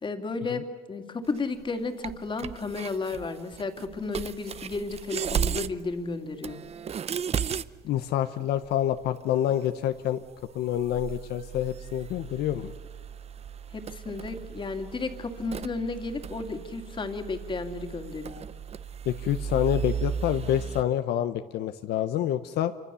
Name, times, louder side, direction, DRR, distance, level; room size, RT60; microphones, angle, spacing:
voice 1, 0.0-6.6 13.7-18.4, left 3 dB, 30° left, 6 dB, 2.5 m, -33 dB
sound 1, 1.4-1.7 2.0-5.9 6.1-6.2 6.4-7.7 8.0-8.1 8.6-9.7 9.9-10.0 10.2-20.8, right 8 dB, 40° right, 0.7 m, -35 dB
voice 2, 7.8-10.2 10.5-12.7 19.1-22.7, left 11 dB, 75° left, 9 dB, 0.9 m, -27 dB
27.0 x 24.0 x 7.0 m, 1.5 s
cardioid pair, 110°, 17 cm